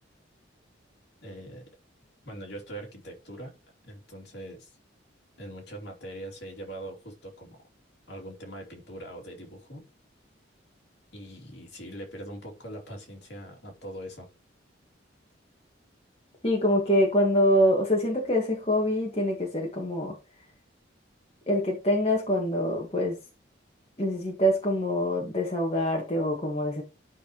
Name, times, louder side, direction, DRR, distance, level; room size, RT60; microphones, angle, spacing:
voice 1, 1.2-1.6 2.2-3.6 3.8-4.8 5.4-7.6 8.1-9.9 11.1-14.3, right 1 dB, 55° left, 3.0 m, -42 dB
voice 2, 16.4-20.1 21.5-23.2 24.0-26.8, equal, 30° left, 1.7 m, -25 dB
12.0 x 5.7 x 3.1 m
head